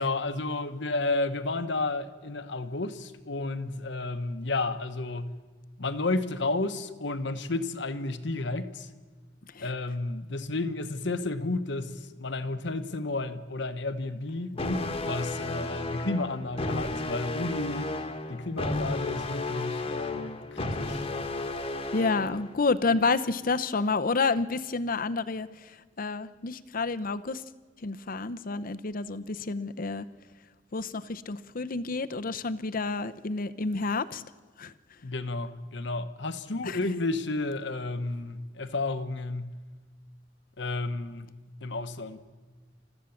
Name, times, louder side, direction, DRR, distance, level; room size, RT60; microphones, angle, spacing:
voice 1, 0.0-5.3 5.8-8.9 9.6-17.9 18.3-21.0 35.0-39.5 40.6-41.3 41.6-42.2, left 2 dB, 70° left, 1.1 m, -32 dB
sound 1, 14.6-22.5, left 2 dB, 30° left, 1.4 m, -33 dB
voice 2, 21.9-25.7 26.0-27.4 27.8-30.1 30.7-34.2 34.6-34.7 36.6-36.8, left 3 dB, 50° left, 0.8 m, -29 dB
29.5 x 14.0 x 7.2 m
head